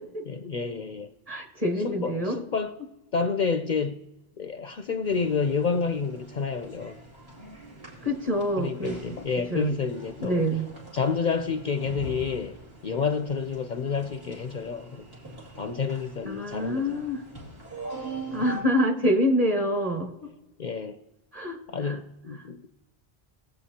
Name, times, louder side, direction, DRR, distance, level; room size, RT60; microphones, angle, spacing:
voice 1, 0.3-1.1 1.8-2.8 3.1-4.1 4.4-7.0 8.6-10.4 10.9-12.5 12.8-15.0 15.6-17.0 18.4-18.5 20.6-21.0 21.7-22.7, left 5 dB, 55° left, 0.6 m, -29 dB
voice 2, 1.3-2.4 8.0-9.0 9.5-9.7 10.2-10.7 16.3-17.2 18.3-20.1 21.3-22.0, equal, 35° right, 1.8 m, -26 dB
sound 1, 5.0-18.6, right 2 dB, 70° right, 2.9 m, -43 dB
19.5 x 8.0 x 2.8 m
omnidirectional pair, 1.1 m